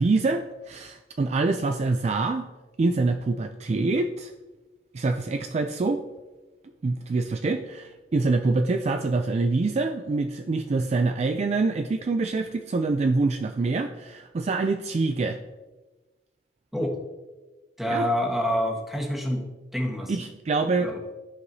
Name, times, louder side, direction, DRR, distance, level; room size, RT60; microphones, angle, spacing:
voice 1, 0.0-2.5 2.8-4.3 4.9-6.0 6.8-15.4 17.9-18.1 20.1-20.9, right 3 dB, 40° right, 6 dB, 0.3 m, -25 dB
voice 2, 17.8-19.5 19.7-20.2 20.8-21.1, equal, ahead, -1 dB, 1.2 m, -27 dB
13.5 x 4.8 x 2.7 m, 1.2 s
head